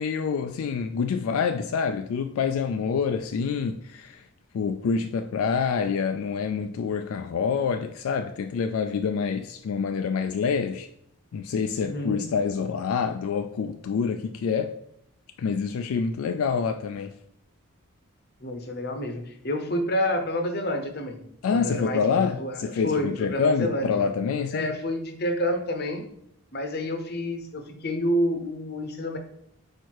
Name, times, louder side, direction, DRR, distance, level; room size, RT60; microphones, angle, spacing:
voice 1, 0.0-4.2 4.5-10.9 11.3-14.7 15.4-17.1 21.4-24.7, left 6 dB, 75° left, 0.3 m, -27 dB
voice 2, 11.8-12.2 18.4-24.0 24.5-26.1 26.5-29.2, left 1 dB, 45° left, 0.7 m, -29 dB
4.5 x 4.5 x 4.6 m
head